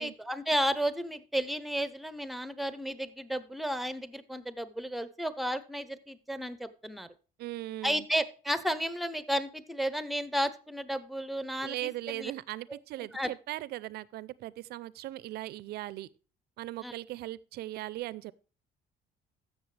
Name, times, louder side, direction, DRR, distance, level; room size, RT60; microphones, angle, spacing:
voice 1, 0.0-7.1 7.8-12.3 12.7-12.8 13.1-13.3 16.8-16.9, equal, ahead, 0.7 m, -33 dB
voice 2, 7.4-8.1 11.6-16.1 16.6-18.3, right 15 dB, 70° right, 0.5 m, -39 dB
14.0 x 6.5 x 3.3 m
cardioid pair, 110°, 17 cm